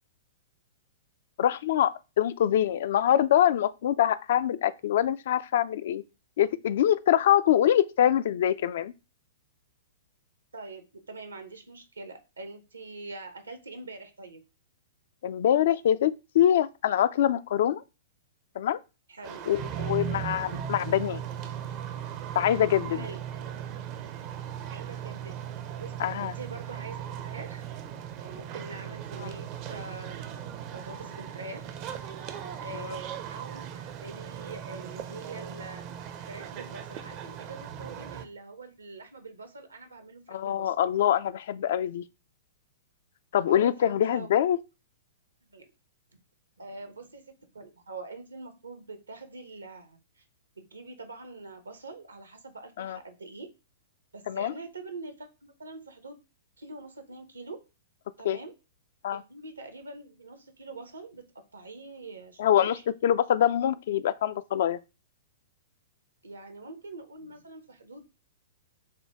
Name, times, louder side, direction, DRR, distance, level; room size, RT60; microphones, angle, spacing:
voice 1, 1.4-6.0 6.4-8.9 15.2-17.8 18.6-18.8 19.5-21.2 22.4-23.1 26.0-26.3 29.2-29.3 32.7-32.9 40.3-42.0 43.3-44.6 52.8-53.0 54.3-54.5 58.2-58.4 59.0-59.2 62.4-62.8 63.0-64.8, left 11 dB, 50° left, 0.3 m, -24 dB
voice 2, 10.5-14.4 19.1-19.4 22.9-23.6 24.7-25.3 25.8-27.6 28.2-30.3 30.7-31.7 32.6-35.8 36.2-40.7 43.5-44.4 45.5-45.6 46.6-50.2 50.6-53.5 54.1-56.2 56.6-57.6 58.2-58.5 59.1-61.2 61.5-62.8 66.2-68.0, right 3 dB, 75° right, 0.8 m, -44 dB
sound 1, 19.2-38.2, right 9 dB, 35° right, 0.5 m, -38 dB
6.5 x 2.2 x 3.4 m
figure-of-eight pair, 105°, 0 cm